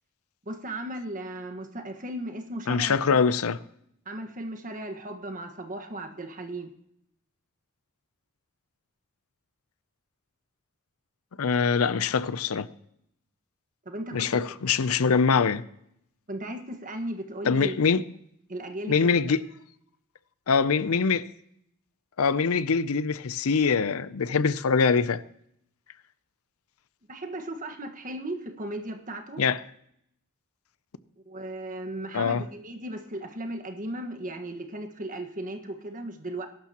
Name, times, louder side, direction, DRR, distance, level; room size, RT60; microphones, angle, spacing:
voice 1, 0.4-3.0 4.0-6.7 13.8-14.4 16.3-17.8 18.5-19.2 27.1-29.4 31.3-36.5, right 1 dB, 40° right, 1.5 m, -36 dB
voice 2, 2.7-3.6 11.4-12.7 14.1-15.6 17.4-18.0 18.9-19.4 20.5-21.2 22.2-25.2 29.4-29.6 32.1-32.4, left 5 dB, 75° left, 0.6 m, -23 dB
21.0 x 11.5 x 2.9 m
head